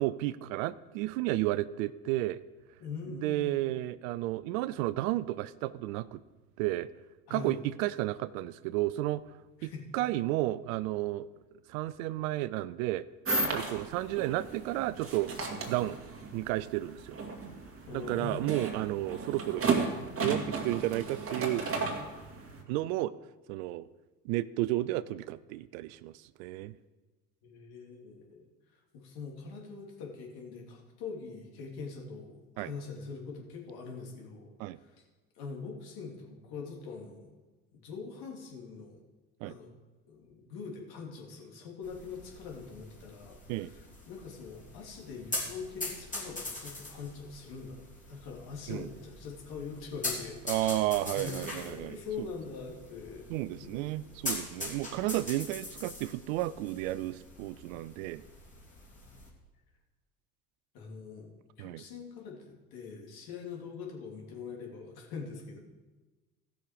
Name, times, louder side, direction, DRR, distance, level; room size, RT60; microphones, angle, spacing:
voice 1, 0.0-2.4 3.2-6.2 6.6-6.9 7.3-9.2 9.6-11.3 11.7-13.1 13.4-15.3 15.7-16.0 16.3-17.2 17.9-19.6 20.2-21.6 22.7-23.1 23.5-23.9 24.2-26.7 32.6-32.7 34.6-34.8 39.4-39.5 43.5-43.7 48.7-48.9 50.5-52.3 53.3-58.2 61.6-61.8, right 16 dB, 65° right, 18 dB, 0.5 m, -32 dB
voice 2, 2.8-3.6 7.3-7.6 9.6-9.8 17.9-18.7 27.4-34.5 34.8-35.0 35.3-37.3 37.7-39.0 39.4-39.7 40.1-47.8 48.1-50.9 51.1-53.3 53.5-54.1 60.7-61.3 61.6-65.6, left 5 dB, 55° left, 0 dB, 3.0 m, -43 dB
sound 1, 13.2-22.6, right 3 dB, 30° right, 2.2 m, -34 dB
sound 2, 41.8-59.3, left 2 dB, 15° left, 3.2 m, -42 dB
15.5 x 6.4 x 5.1 m, 1.2 s
hypercardioid pair, 70°, 45 cm